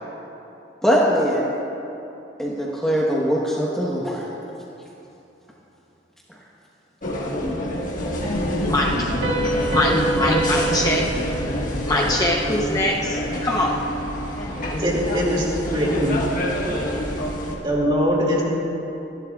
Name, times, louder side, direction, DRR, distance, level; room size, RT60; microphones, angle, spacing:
voice 1, 0.8-1.5 2.4-4.2, equal, 5° left, -5 dB, 1.1 m, -21 dB
sound 1, 7.0-17.6, equal, 45° left, 1.5 m, -26 dB
Piano, 9.2-12.6, right 2 dB, 60° right, 2.1 m, -27 dB
voice 2, 9.7-11.0 11.9-13.7, left 1 dB, 20° left, -2 dB, 0.8 m, -23 dB
voice 3, 14.8-16.2 17.6-18.4, equal, 30° right, -3 dB, 2.3 m, -21 dB
25.5 x 11.5 x 2.4 m, 3.0 s
head